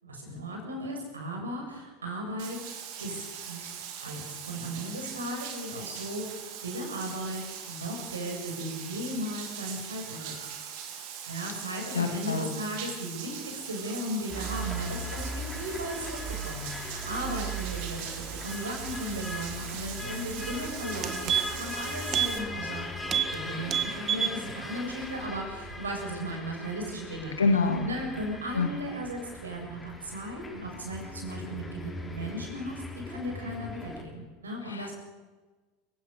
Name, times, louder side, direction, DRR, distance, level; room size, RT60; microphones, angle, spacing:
voice 1, 0.0-2.6 3.0-3.7 4.0-6.4 6.6-7.4 7.7-10.3 11.2-18.1 18.4-22.9 23.3-27.3 27.8-34.9, equal, 85° right, 2 dB, 7.0 m, -36 dB
Bathtub (filling or washing), 2.4-22.4, right 8 dB, 55° right, 3.4 m, -41 dB
voice 2, 11.9-12.6 27.4-27.9 28.5-28.7 34.7-34.9, left 4 dB, 85° left, 5 dB, 2.8 m, -26 dB
sound 1, 14.3-34.0, equal, 10° left, 5.5 m, -39 dB
sound 2, 20.4-20.5 20.8-21.7 22.1-22.3 22.6-22.8 23.1-23.3 23.6-24.4 24.7-24.8, right 9 dB, 35° right, 1.9 m, -28 dB
27.5 x 16.0 x 6.7 m, 1.3 s
figure-of-eight pair, 85°, 0 cm